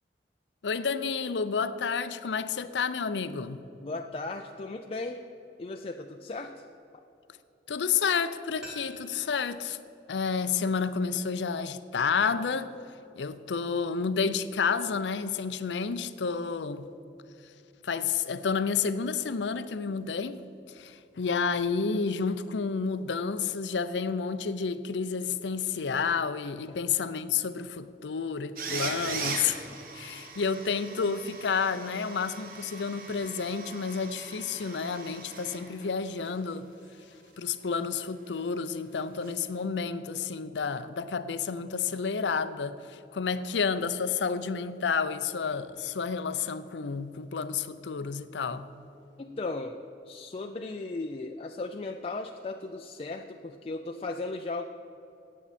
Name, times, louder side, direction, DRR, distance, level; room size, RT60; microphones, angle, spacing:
voice 1, 0.6-3.6 7.7-9.8 10.1-12.7 13.2-16.9 17.8-20.4 20.7-29.7 29.9-36.7 37.4-48.7, left 5 dB, 85° left, 0.5 m, -30 dB
voice 2, 3.8-5.2 5.6-6.7 26.7-26.8 49.2-49.8 50.1-54.6, left 3 dB, 35° left, 0.4 m, -36 dB
sound 1, 8.6-11.4 11.7-11.8, equal, 5° right, 2.1 m, -51 dB
sound 2, 28.6-36.0 36.2-36.3 39.2-39.3, right 4 dB, 55° right, 1.2 m, -40 dB
17.5 x 7.4 x 4.2 m
head